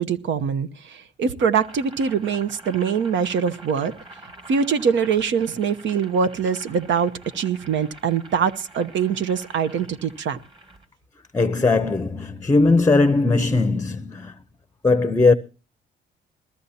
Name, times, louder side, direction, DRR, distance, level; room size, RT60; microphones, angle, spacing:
voice 1, 0.0-3.9 4.5-10.4, right 6 dB, 70° right, 0.9 m, -23 dB
Boiling, 1.4-10.9, right 2 dB, 25° right, 2.4 m, -46 dB
voice 2, 11.3-14.3 14.8-15.3, left 3 dB, 15° left, 0.7 m, -19 dB
20.5 x 14.0 x 2.8 m
cardioid pair, 90°, 20 cm